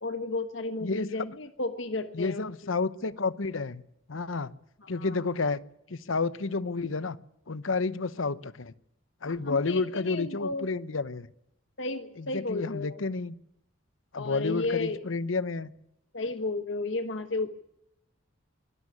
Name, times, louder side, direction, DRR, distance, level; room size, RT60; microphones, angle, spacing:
voice 1, 0.0-2.4 4.8-5.2 9.2-10.7 11.8-13.0 14.1-15.0 16.1-17.5, left 3 dB, 65° left, 9 dB, 1.2 m, -33 dB
voice 2, 2.1-3.8 4.1-4.5 4.9-5.6 5.9-7.2 7.5-8.7 9.2-11.3 12.2-13.3 14.1-15.7, left 4 dB, 90° left, 17 dB, 0.9 m, -30 dB
24.0 x 13.0 x 9.8 m, 0.81 s
head